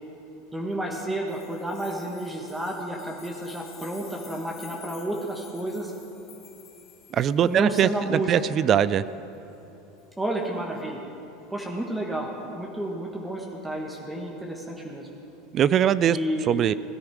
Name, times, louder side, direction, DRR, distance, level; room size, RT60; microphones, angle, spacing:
voice 1, 0.5-5.9 7.4-8.4 10.2-11.0 11.5-15.1 16.1-16.6, right 1 dB, 10° right, -1 dB, 1.5 m, -31 dB
sound 1, 1.3-7.7 10.0-10.1, left 8 dB, 45° left, 1.6 m, -50 dB
voice 2, 7.1-9.0 15.5-16.2 16.5-16.7, right 9 dB, 40° right, 17 dB, 0.3 m, -21 dB
17.0 x 10.5 x 4.8 m, 3.0 s
hypercardioid pair, 100°, 0 cm